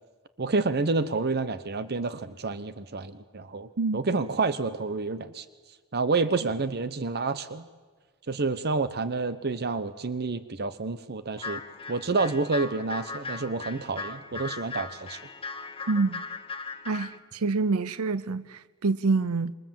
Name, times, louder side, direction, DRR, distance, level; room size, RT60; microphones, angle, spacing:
voice 1, 0.4-5.4 5.9-7.6 8.3-11.6 11.9-15.2, right 3 dB, 50° right, 1.0 m, -29 dB
sound 1, 11.4-17.2, left 4 dB, 25° left, 1.7 m, -38 dB
voice 2, 15.9-16.2 16.9-19.5, right 3 dB, 75° right, 0.7 m, -27 dB
28.0 x 24.0 x 7.6 m
head